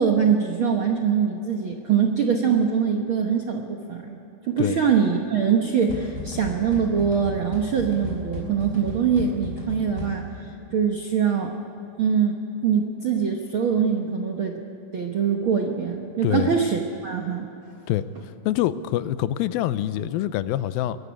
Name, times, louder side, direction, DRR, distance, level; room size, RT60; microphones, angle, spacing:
voice 1, 0.0-4.2 4.4-11.5 12.0-14.6 14.9-17.5, right 7 dB, 70° right, 2 dB, 1.2 m, -23 dB
sound 1, 5.9-10.5, left 2 dB, 20° left, 5.3 m, -35 dB
voice 2, 18.5-21.0, left 13 dB, 85° left, 14 dB, 2.5 m, -25 dB
21.5 x 15.0 x 9.7 m, 3.0 s
omnidirectional pair, 4.1 m